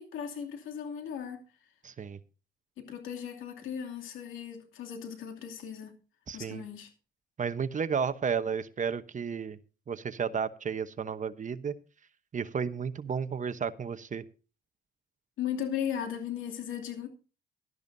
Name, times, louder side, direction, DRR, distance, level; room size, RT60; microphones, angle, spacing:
voice 1, 0.0-1.4 2.8-6.0 6.3-6.9 15.4-17.1, left 9 dB, 85° left, 2.7 m, -37 dB
voice 2, 1.8-2.2 6.3-6.7 7.4-9.6 9.9-11.7 12.3-14.2, right 6 dB, 40° right, 1.0 m, -32 dB
17.0 x 12.5 x 2.7 m
cardioid pair, 90°, 20 cm